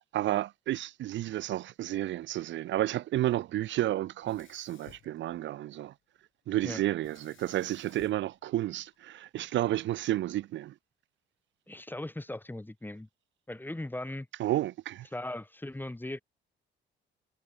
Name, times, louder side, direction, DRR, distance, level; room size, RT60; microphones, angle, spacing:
voice 1, 0.1-5.9 6.5-10.7 14.4-15.1, right 14 dB, 70° right, 0.5 m, -31 dB
Sink (filling or washing), 4.2-5.9 7.0-9.3, left 13 dB, 80° left, 7.1 m, -59 dB
voice 2, 11.7-13.1 13.5-14.3 15.1-16.2, left 1 dB, 10° left, 4.4 m, -38 dB
cardioid pair, 90°, 20 cm